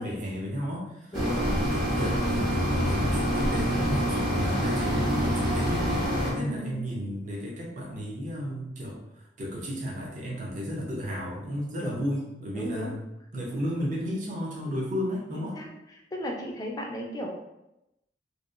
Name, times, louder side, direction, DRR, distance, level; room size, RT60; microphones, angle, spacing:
voice 1, 0.0-1.2 1.9-13.0 13.3-15.6, equal, 45° right, -4 dB, 0.6 m, -33 dB
voice 2, 1.1-1.6 6.3-6.8 11.8-12.0 12.5-12.9 15.3-15.7 16.1-17.3, equal, 20° left, 0 dB, 0.3 m, -35 dB
sound 1, 1.1-6.3, equal, 25° right, 0.9 m, -26 dB
2.7 x 2.1 x 2.4 m, 0.91 s
head